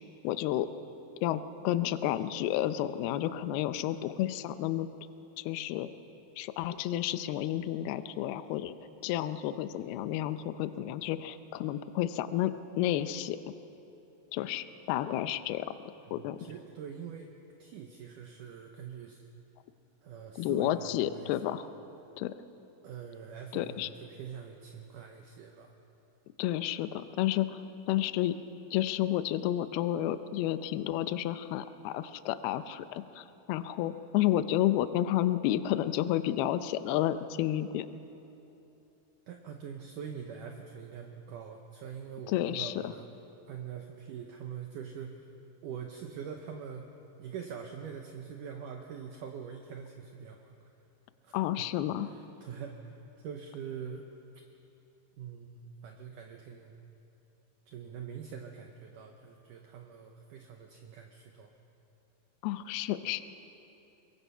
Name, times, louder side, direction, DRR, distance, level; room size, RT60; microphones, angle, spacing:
voice 1, 0.2-0.7 1.2-4.9 5.4-5.9 6.4-8.7 9.0-13.4 14.3-15.7 16.1-16.4 20.4-21.7 22.2-22.4 23.5-23.9 26.4-27.6 27.9-28.3 28.7-37.9 42.3-42.7 51.3-52.1 62.4-63.2, left 13 dB, 80° left, 12 dB, 2.6 m, -31 dB
voice 2, 16.0-17.3 17.6-19.3 20.0-21.4 22.8-25.7 39.3-43.0 43.5-45.3 45.6-46.9 47.2-50.7 51.2-51.6 52.0-54.1 55.2-56.8 57.7-61.5, right 7 dB, 70° right, 3 dB, 2.1 m, -44 dB
23.5 x 23.0 x 5.6 m, 2.9 s
omnidirectional pair, 4.6 m